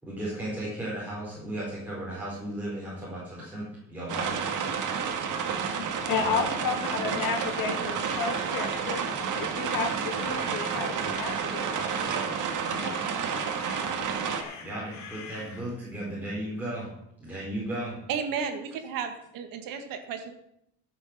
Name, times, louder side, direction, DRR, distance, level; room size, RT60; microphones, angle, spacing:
voice 1, 0.0-4.5 6.2-6.3 14.6-16.9 17.2-18.0, right 1 dB, 5° right, -7 dB, 4.3 m, -35 dB
sound 1, 4.1-14.4, right 6 dB, 65° right, 1.9 m, -30 dB
voice 2, 5.8-11.7 12.0-12.2 12.6-13.0 14.0-14.6, left 5 dB, 80° left, 4 dB, 2.4 m, -33 dB
sound 2, 7.2-15.6, left 5 dB, 55° left, 2.6 m, -47 dB
voice 3, 18.1-20.3, right 6 dB, 80° right, 6 dB, 1.9 m, -33 dB
14.0 x 6.9 x 6.7 m, 0.77 s
cardioid pair, 145°, 33 cm